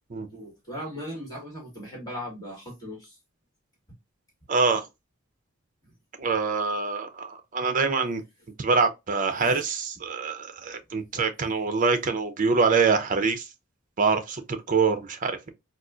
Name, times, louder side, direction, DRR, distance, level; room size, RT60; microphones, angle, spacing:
voice 1, 0.3-3.1 9.4-9.5, equal, 20° left, 1.6 m, -38 dB
voice 2, 4.5-4.9 6.2-8.2 8.6-13.5 14.0-15.5, right 4 dB, 40° right, 0.6 m, -25 dB
4.0 x 2.4 x 2.4 m
head